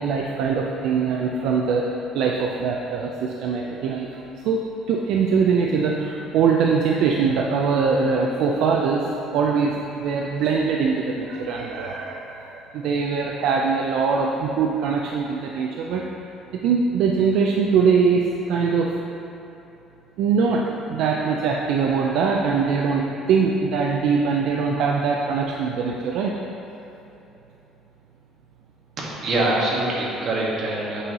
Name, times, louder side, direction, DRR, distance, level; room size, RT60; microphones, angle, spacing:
voice 1, 0.0-1.9 2.1-16.0 16.5-18.9 20.2-20.6 20.9-26.3, right 5 dB, 70° right, -1 dB, 0.4 m, -22 dB
voice 2, 29.0-31.0, right 2 dB, 40° right, -5 dB, 1.4 m, -24 dB
8.1 x 5.4 x 2.8 m, 2.9 s
cardioid pair, 140°, 0 cm